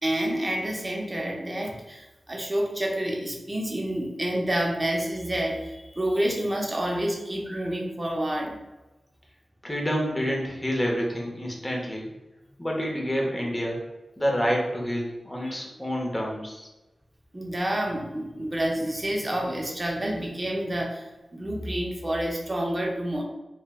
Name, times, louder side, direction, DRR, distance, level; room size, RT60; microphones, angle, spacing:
voice 1, 0.0-8.5 15.5-15.6 17.3-23.2, right 1 dB, 25° right, 0 dB, 0.5 m, -28 dB
voice 2, 9.6-12.1 12.6-13.8 14.2-16.7, equal, 15° left, -1 dB, 0.7 m, -28 dB
3.1 x 2.1 x 2.3 m, 1.0 s
wide cardioid pair, 85°, 0 cm